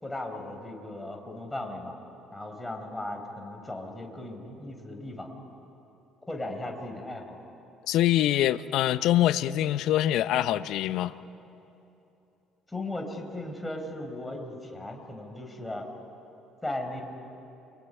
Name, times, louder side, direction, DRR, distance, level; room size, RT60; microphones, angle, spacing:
voice 1, 0.0-2.0 2.3-5.3 6.3-7.4 12.7-15.9 16.6-17.0, left 1 dB, 10° left, 4.5 m, -37 dB
voice 2, 7.9-11.2, left 13 dB, 60° left, 0.6 m, -24 dB
29.0 x 23.0 x 5.6 m
figure-of-eight pair, 50°, 0 cm